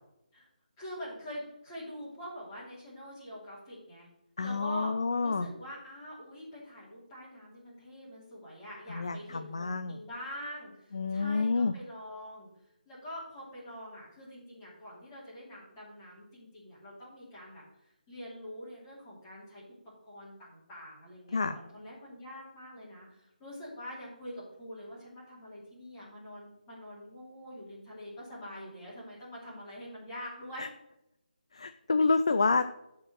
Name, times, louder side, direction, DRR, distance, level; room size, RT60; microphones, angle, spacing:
voice 1, 0.8-4.1 4.4-4.9 5.2-12.5 12.8-19.6 20.0-30.7, equal, 10° left, -8 dB, 3.0 m, -45 dB
voice 2, 4.4-5.5 8.9-10.0 10.9-11.7 21.3-21.6 30.6-30.7 31.5-32.7, left 4 dB, 35° left, 9 dB, 0.4 m, -28 dB
12.5 x 4.7 x 6.4 m, 0.84 s
hypercardioid pair, 180°, 5 cm